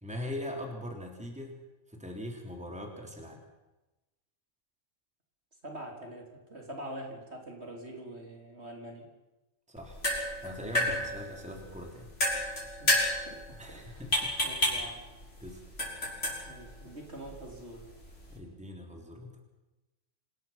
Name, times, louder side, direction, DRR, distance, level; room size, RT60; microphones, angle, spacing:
voice 1, 0.0-1.6 1.9-3.4 9.7-10.0 10.4-12.5 13.6-14.4 15.4-15.6 18.3-19.3, left 1 dB, 5° right, 2 dB, 3.5 m, -41 dB
voice 2, 5.6-9.1 12.8-14.0 14.4-15.1 16.4-17.8, right 1 dB, 50° right, 1 dB, 4.4 m, -44 dB
sound 1, 9.8-18.4, left 1 dB, 55° left, 6.3 m, -32 dB
26.5 x 19.5 x 5.9 m, 1.0 s
omnidirectional pair, 1.4 m